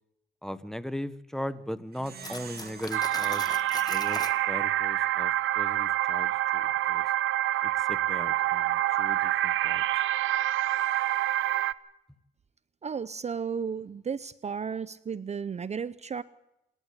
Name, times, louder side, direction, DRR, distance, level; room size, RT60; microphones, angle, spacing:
voice 1, 0.4-3.4 3.9-5.3 5.6-7.0 7.6-9.8, equal, ahead, 15 dB, 1.1 m, -38 dB
Plucked string instrument, 1.9-4.7, right 6 dB, 50° right, 2.7 m, -47 dB
Cutlery silverware, 2.2-4.4, left 3 dB, 20° left, 1.9 m, -40 dB
sound 1, 2.9-11.7, right 14 dB, 80° right, 0.8 m, -27 dB
voice 2, 12.8-16.2, right 6 dB, 35° right, 16 dB, 0.7 m, -34 dB
27.5 x 12.0 x 8.5 m, 0.87 s
cardioid pair, 90°, 20 cm